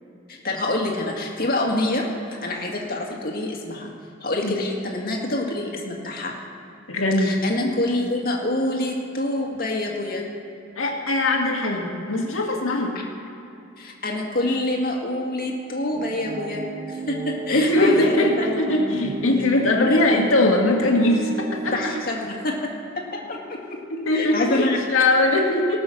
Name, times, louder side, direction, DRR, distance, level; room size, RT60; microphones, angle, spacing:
voice 1, 0.3-2.1 2.4-3.9 4.2-6.3 7.2-10.2 13.8-16.6 16.9-18.6 19.9-20.0 21.7-22.7 23.0-23.6 24.1-24.8, left 1 dB, 50° left, 0 dB, 2.0 m, -26 dB
voice 2, 6.9-7.7 10.8-13.0 17.5-21.9 24.1-25.8, left 2 dB, 85° left, 1 dB, 1.8 m, -21 dB
sound 1, 15.9-22.0, right 3 dB, 40° right, 0.7 m, -33 dB
19.0 x 6.3 x 6.3 m, 2.8 s
head